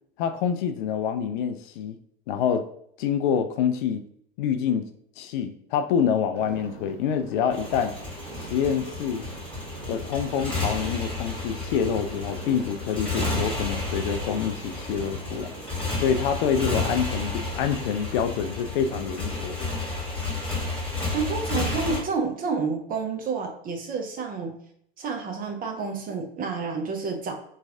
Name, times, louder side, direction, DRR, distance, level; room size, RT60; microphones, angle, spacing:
voice 1, 0.2-2.0 2.3-2.6 3.0-4.0 4.4-4.9 5.2-7.9 8.4-9.2 9.9-15.5 16.0-19.7, left 7 dB, 55° left, 8 dB, 0.4 m, -26 dB
sound 1, 6.3-20.0, right 3 dB, 50° right, 1.5 m, -44 dB
Motorcycle, 7.5-22.0, left 2 dB, 5° left, 1.3 m, -31 dB
voice 2, 21.1-24.6 25.0-27.3, right 4 dB, 30° right, 3 dB, 0.7 m, -29 dB
3.1 x 2.3 x 3.6 m, 0.67 s
hypercardioid pair, 90°, 31 cm